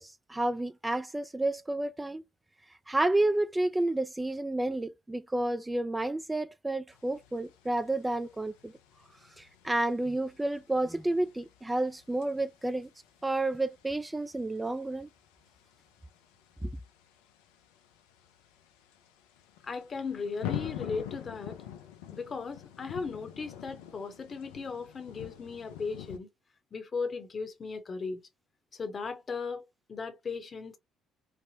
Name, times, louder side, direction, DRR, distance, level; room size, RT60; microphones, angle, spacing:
voice 1, 0.0-2.2 2.9-8.7 9.4-12.9 13.2-15.1 16.6-16.7, right 2 dB, 15° right, 0.3 m, -30 dB
gwitter-berlin, 6.9-26.2, left 11 dB, 80° left, 0.4 m, -46 dB
voice 2, 19.6-21.6 22.1-26.3 26.7-28.2 28.7-29.6 29.9-30.8, left 4 dB, 40° left, 0.9 m, -37 dB
3.4 x 2.1 x 2.7 m
hypercardioid pair, 55°, 0 cm